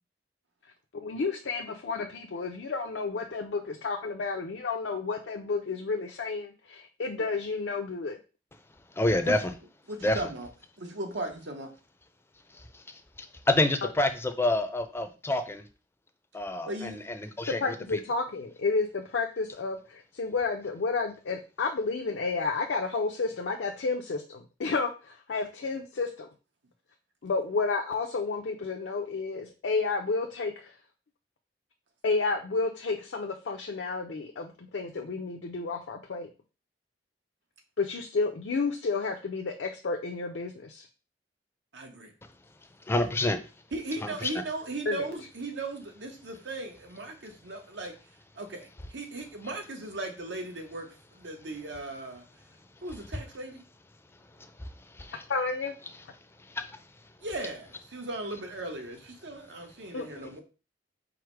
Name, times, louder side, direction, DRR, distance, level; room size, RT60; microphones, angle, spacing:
voice 1, 0.9-8.2 13.8-13.9 17.5-26.3 27.2-30.7 32.0-36.3 37.8-40.9 44.9-45.1 55.3-55.8 59.9-60.3, left 4 dB, 80° left, 3 dB, 0.5 m, -31 dB
voice 2, 9.0-9.5 10.0-10.2 12.5-12.8 13.5-15.6 16.3-18.0 42.9-43.4 44.0-44.3 54.6-54.7 54.9-55.1 56.5-56.7, left 1 dB, 15° left, 8 dB, 0.4 m, -28 dB
voice 3, 9.9-10.5 10.8-11.7 16.7-17.0 41.7-42.1 43.7-47.9 48.3-50.9 51.2-52.2 52.8-53.6 57.2-60.4, right 2 dB, 90° right, 3 dB, 1.0 m, -37 dB
4.8 x 2.0 x 4.5 m, 0.32 s
head